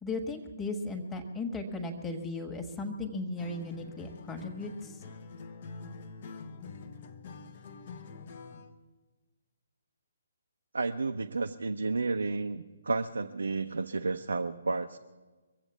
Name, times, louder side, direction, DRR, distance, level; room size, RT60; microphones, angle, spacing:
voice 1, 0.0-4.9, left 2 dB, 10° left, 2 dB, 1.5 m, -36 dB
Acoustic guitar, 3.4-8.8, left 4 dB, 45° left, 1.0 m, -46 dB
voice 2, 10.7-15.0, right 3 dB, 70° right, 6 dB, 0.7 m, -31 dB
23.5 x 8.0 x 7.1 m, 1.3 s
figure-of-eight pair, 135°, 0 cm